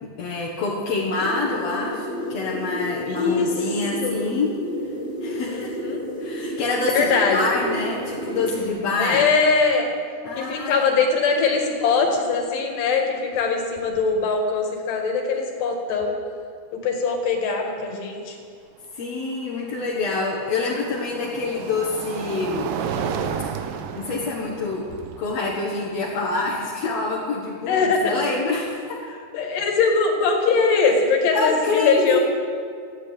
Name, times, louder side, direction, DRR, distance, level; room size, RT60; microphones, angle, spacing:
voice 1, 0.0-4.6 5.2-5.7 6.2-9.3 10.2-10.9 18.9-22.7 23.6-23.7 24.0-24.9 25.2-29.0 31.3-32.2, left 3 dB, 55° left, -4 dB, 2.0 m, -26 dB
sound 1, 1.1-8.7, equal, 20° right, 2.6 m, -31 dB
voice 2, 3.1-3.5 4.0-4.4 5.5-6.0 6.9-7.6 9.0-9.9 10.3-16.2 16.7-18.4 27.7-28.1 29.3-32.2, left 4 dB, 75° left, 2 dB, 4.0 m, -21 dB
Passing Car Snow Bridge, 13.3-13.5 13.8-14.2 16.0-16.1 19.1-27.2, right 7 dB, 75° right, 2.1 m, -33 dB
15.5 x 10.0 x 8.9 m, 2.2 s
omnidirectional pair, 4.9 m